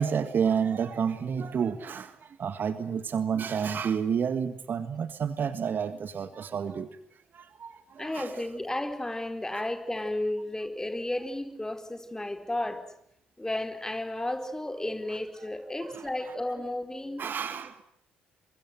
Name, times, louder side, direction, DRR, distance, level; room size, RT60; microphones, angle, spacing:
voice 1, 0.0-8.4 9.5-9.6 15.1-15.2 15.9-16.3 17.2-17.8, right 7 dB, 45° right, 1.7 m, -30 dB
voice 2, 8.0-12.8 13.4-17.3, left 1 dB, 10° left, 4.5 m, -33 dB
28.5 x 23.5 x 7.8 m
figure-of-eight pair, 45°, 5 cm